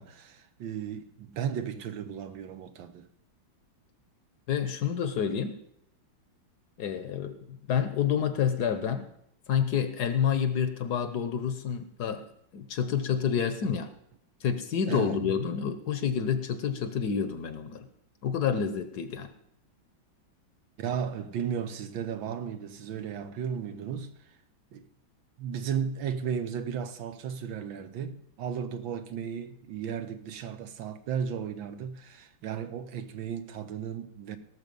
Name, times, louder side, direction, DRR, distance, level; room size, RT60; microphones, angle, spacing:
voice 1, 0.0-3.1 14.9-15.2 20.8-24.3 24.7-24.9 25.4-34.4, right 8 dB, 75° right, 1.6 m, -35 dB
voice 2, 4.5-5.6 6.8-9.1 9.5-12.3 12.5-13.9 14.4-17.9 18.2-19.3, left 7 dB, 60° left, 1.3 m, -28 dB
17.5 x 6.7 x 5.3 m
omnidirectional pair, 2.2 m